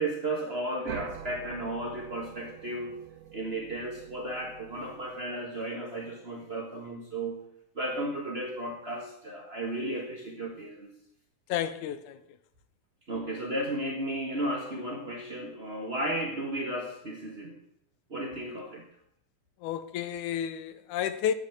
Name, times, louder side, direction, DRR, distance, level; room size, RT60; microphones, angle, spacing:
voice 1, 0.0-3.0 3.3-7.4 7.7-10.9 13.1-17.6 18.1-18.9, right 1 dB, 50° right, 0.7 m, -34 dB
sound 1, 0.9-5.6, right 10 dB, 80° right, 1.4 m, -45 dB
voice 2, 11.5-12.2 19.6-21.3, left 9 dB, 75° left, 2.1 m, -31 dB
9.3 x 8.4 x 9.5 m
omnidirectional pair, 3.8 m